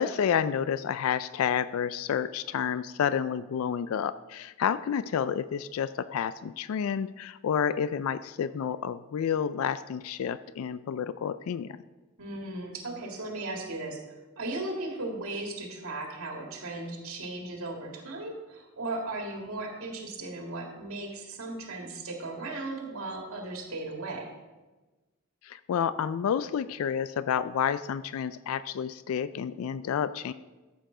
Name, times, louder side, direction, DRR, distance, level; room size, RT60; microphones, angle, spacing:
voice 1, 0.0-11.8 25.4-30.3, left 8 dB, 80° left, 15 dB, 0.3 m, -30 dB
voice 2, 12.2-14.0 14.4-24.3, right 2 dB, 85° right, 1 dB, 1.9 m, -36 dB
14.0 x 7.0 x 3.8 m, 1.2 s
head